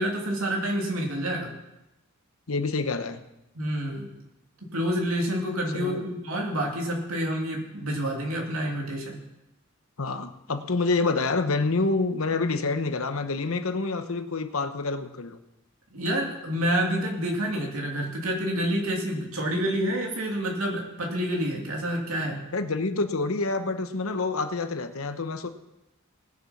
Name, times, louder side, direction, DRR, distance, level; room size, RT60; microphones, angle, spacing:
voice 1, 0.0-1.5 3.5-4.2 4.7-9.2 15.9-22.4, equal, 80° right, 0 dB, 2.9 m, -28 dB
voice 2, 2.5-3.2 5.7-6.0 10.0-15.4 22.5-25.5, left 3 dB, 75° left, 9 dB, 1.0 m, -27 dB
19.0 x 7.2 x 5.8 m, 0.94 s
head